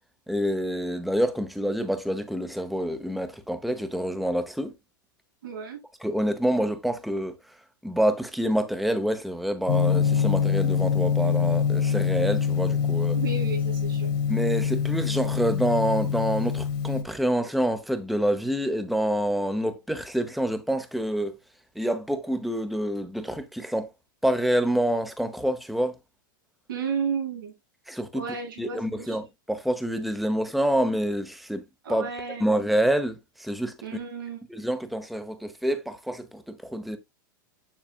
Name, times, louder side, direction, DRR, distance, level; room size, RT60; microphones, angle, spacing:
voice 1, 0.3-4.8 6.0-7.4 7.8-13.2 14.3-21.4 21.7-23.9 24.2-26.0 27.9-28.3 28.6-32.1 32.4-33.8 34.5-37.0, equal, ahead, 0.9 m, -27 dB
voice 2, 5.4-5.8 13.1-14.1 26.7-27.6 28.1-29.2 31.8-32.5 33.8-34.4, right 6 dB, 85° right, 3.5 m, -32 dB
Gong, 9.7-17.0, left 7 dB, 60° left, 1.9 m, -25 dB
7.4 x 6.5 x 2.3 m
hypercardioid pair, 125°, 11 cm